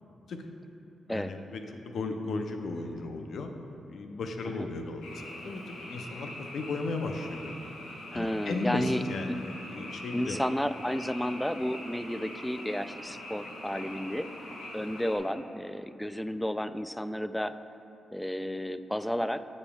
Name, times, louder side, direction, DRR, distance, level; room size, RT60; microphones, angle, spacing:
voice 1, 1.1-3.5 3.9-7.5 8.1-10.4, left 3 dB, 70° left, 5 dB, 0.6 m, -35 dB
Frog, 5.0-15.2, left 1 dB, 90° left, 1.0 m, -43 dB
voice 2, 8.1-9.0 9.3-9.4 10.1-14.3 14.7-17.5 18.1-19.4, equal, 5° left, 12 dB, 0.3 m, -32 dB
15.0 x 5.3 x 2.3 m, 2.8 s
supercardioid pair, 45°, 0 cm